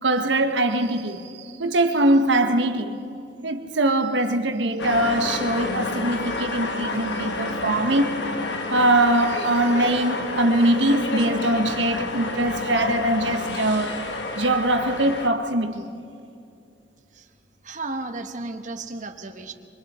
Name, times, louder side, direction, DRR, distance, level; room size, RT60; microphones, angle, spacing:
voice 1, 0.0-3.0 3.4-8.1 8.7-14.0 14.4-15.9, right 1 dB, 85° right, 1.2 m, -22 dB
sound 1, 4.8-15.3, left 2 dB, 70° left, 1.4 m, -29 dB
voice 2, 17.6-19.5, right 2 dB, 45° right, 1.2 m, -33 dB
25.5 x 24.0 x 4.3 m
head